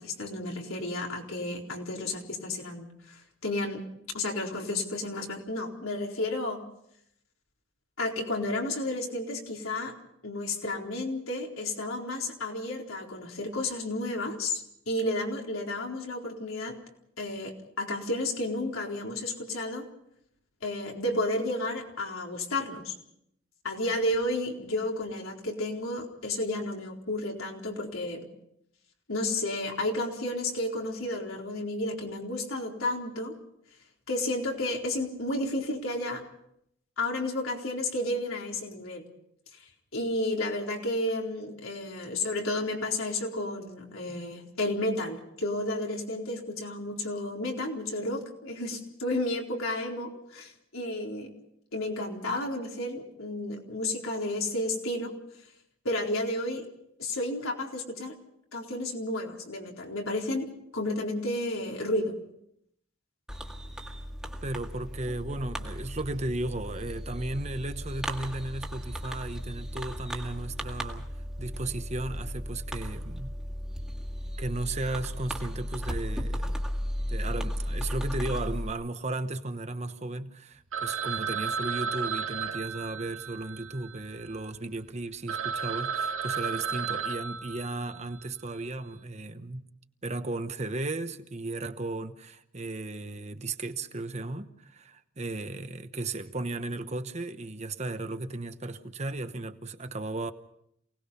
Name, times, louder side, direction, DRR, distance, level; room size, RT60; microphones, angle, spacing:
voice 1, 0.0-3.8 4.1-6.6 8.0-9.9 10.2-16.8 17.2-19.9 20.6-22.9 23.6-28.3 29.1-33.4 34.1-36.2 37.0-39.0 39.6-51.3 51.7-55.1 55.8-56.6 57.0-58.1 58.5-62.1, left 1 dB, 85° left, 4.2 m, -32 dB
Fireworks, 63.3-78.7, equal, 5° right, 1.8 m, -35 dB
voice 2, 64.4-71.1 71.4-73.3 74.4-76.6 77.0-89.7 90.0-100.3, right 2 dB, 30° right, 1.0 m, -35 dB
Telephone, 80.7-84.5 85.0-85.1 85.3-88.2, right 6 dB, 85° right, 1.7 m, -33 dB
28.0 x 19.0 x 5.7 m
head